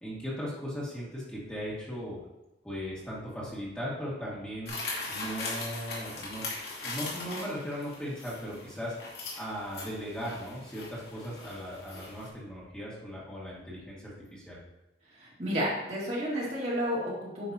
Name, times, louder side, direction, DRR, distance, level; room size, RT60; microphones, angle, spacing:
voice 1, 0.0-2.2 2.6-4.7 5.1-6.5 6.8-14.6, equal, 5° left, -7 dB, 1.9 m, -38 dB
sound 1, 4.7-12.3, left 3 dB, 60° left, 2.3 m, -40 dB
voice 2, 15.1-17.5, equal, 35° right, -6 dB, 2.1 m, -31 dB
9.7 x 5.8 x 2.8 m, 0.93 s
head